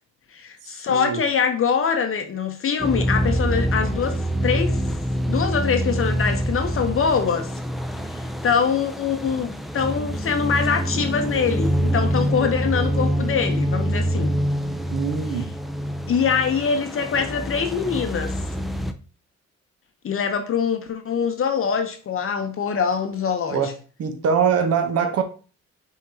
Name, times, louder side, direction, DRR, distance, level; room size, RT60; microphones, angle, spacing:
voice 1, 0.3-4.8 5.3-7.5 8.1-14.4 16.1-18.3 20.0-23.6, left 6 dB, 45° left, 0.7 m, -24 dB
voice 2, 0.9-1.2 14.9-15.5 23.5-23.7 24.0-25.2, right 6 dB, 55° right, 0.8 m, -23 dB
sound 1, 2.8-18.9, equal, ahead, 0.4 m, -25 dB
5.5 x 3.6 x 2.7 m
cardioid pair, 90°, 30 cm